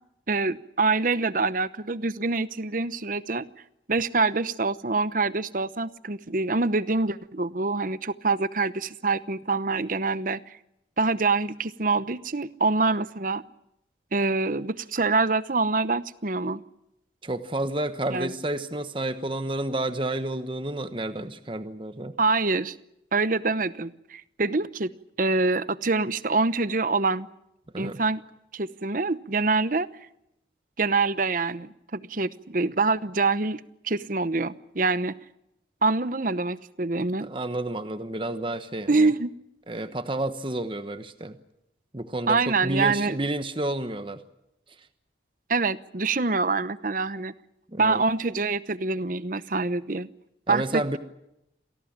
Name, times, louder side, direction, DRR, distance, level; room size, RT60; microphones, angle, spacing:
voice 1, 0.3-3.5 3.9-10.6 11.0-13.4 14.1-16.6 18.1-18.3 22.2-22.7 23.1-24.9 25.2-27.3 27.8-28.2 28.5-29.9 30.8-35.1 35.8-37.3 38.9-39.3 42.3-43.2 45.5-47.3 47.8-50.1 50.5-51.0, right 3 dB, 45° right, 15 dB, 0.9 m, -25 dB
voice 2, 17.2-22.1 27.7-28.0 37.0-39.1 39.7-41.4 41.9-44.2 47.7-48.0 50.5-51.0, right 1 dB, 25° right, 10 dB, 1.1 m, -30 dB
27.5 x 18.0 x 8.8 m, 0.84 s
head